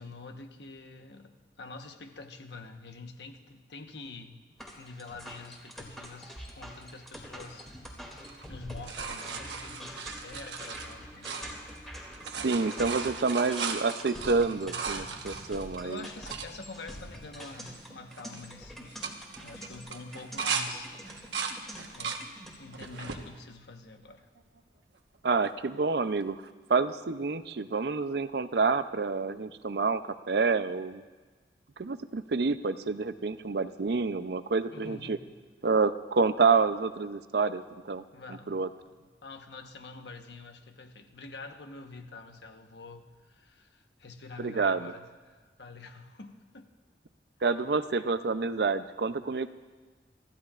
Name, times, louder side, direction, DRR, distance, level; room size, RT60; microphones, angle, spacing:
voice 1, 0.0-4.4 4.8-7.7 8.5-11.3 15.4-15.5 15.8-20.9 21.9-22.2 22.6-24.3 34.7-35.2 38.1-38.6 39.2-46.7, left 3 dB, 80° left, 5 dB, 1.1 m, -46 dB
sound 1, 4.6-22.6, equal, ahead, 2.5 m, -45 dB
sound 2, 8.2-11.9 12.1-16.5 17.1-17.2 17.4-17.8 18.1-18.4 18.8-20.7 21.0-22.2 22.7-23.2 23.9-24.6 26.2-26.3, right 5 dB, 90° right, 1.2 m, -37 dB
voice 2, 12.4-16.1 25.2-26.4 26.7-31.0 31.8-35.2 35.6-38.7 44.4-44.9 47.4-49.5, right 4 dB, 65° right, 12 dB, 0.5 m, -28 dB
25.5 x 14.5 x 2.5 m, 1.3 s
head